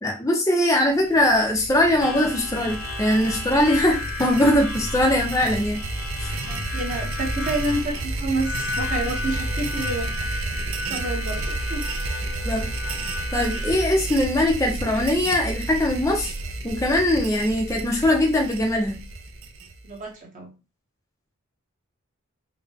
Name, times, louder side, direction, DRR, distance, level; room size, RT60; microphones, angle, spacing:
voice 1, 0.0-5.8 6.2-6.4 12.4-12.7 13.3-16.3 16.6-19.0, left 1 dB, 15° left, 1 dB, 0.5 m, -21 dB
sound 1, 1.0-20.0, right 2 dB, 60° right, 0.5 m, -31 dB
Harmonica, 2.0-13.8, left 3 dB, 75° left, 1.0 m, -34 dB
voice 2, 6.4-10.3 10.9-11.8 19.8-20.5, right 2 dB, 35° right, -1 dB, 0.9 m, -29 dB
3.7 x 2.1 x 3.4 m, 0.30 s
head